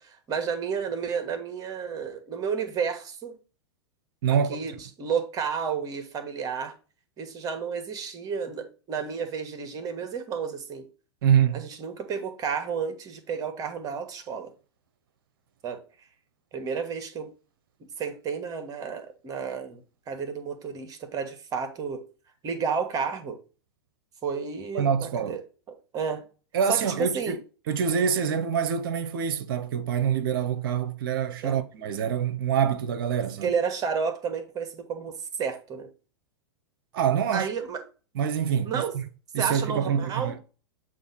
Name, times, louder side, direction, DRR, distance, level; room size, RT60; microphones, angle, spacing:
voice 1, 0.0-3.4 4.5-6.7 7.2-10.9 11.5-14.5 15.6-15.8 16.5-17.3 18.0-22.0 22.4-23.4 24.2-25.4 25.9-26.2 26.7-27.4 31.4-31.6 33.4-35.9 37.3-37.8 38.6-39.0 39.4-40.4, right 6 dB, 25° right, 1.2 m, -31 dB
voice 2, 4.2-4.6 11.2-11.6 24.7-25.3 26.5-27.4 27.7-33.5 36.9-37.5 38.1-39.0 39.3-40.4, right 8 dB, 50° right, 0.8 m, -25 dB
7.8 x 2.6 x 5.4 m
figure-of-eight pair, 100°, 15 cm